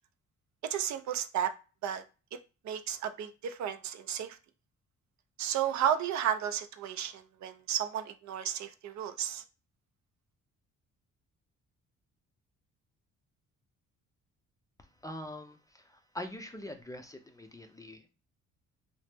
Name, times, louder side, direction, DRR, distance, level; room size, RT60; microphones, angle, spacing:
voice 1, 0.6-1.5 1.8-2.0 2.6-4.4 5.4-9.4, right 9 dB, 70° right, 10 dB, 0.5 m, -33 dB
voice 2, 15.0-18.1, left 1 dB, 10° left, 6 dB, 0.4 m, -43 dB
2.9 x 2.0 x 3.3 m, 0.32 s
cardioid pair, 90°, 30 cm